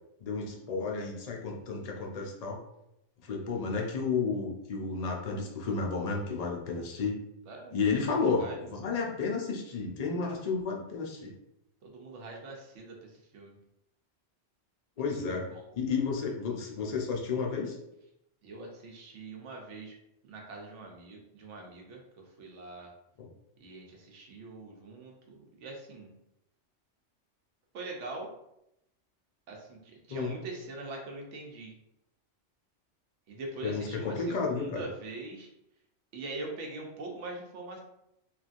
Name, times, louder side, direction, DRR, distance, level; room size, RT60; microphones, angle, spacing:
voice 1, 0.2-2.6 3.2-7.2 7.7-11.3 15.0-15.5 15.7-17.8 23.2-23.3 30.1-30.3 33.6-34.7, left 4 dB, 55° left, 0 dB, 0.4 m, -32 dB
voice 2, 8.0-8.6 11.8-13.5 15.3-15.7 18.4-20.0 20.2-22.9 23.6-26.1 27.7-28.3 29.5-31.7 33.3-35.5 36.1-37.8, right 2 dB, 80° right, 0 dB, 1.0 m, -43 dB
3.0 x 2.4 x 2.5 m, 0.82 s
omnidirectional pair, 1.2 m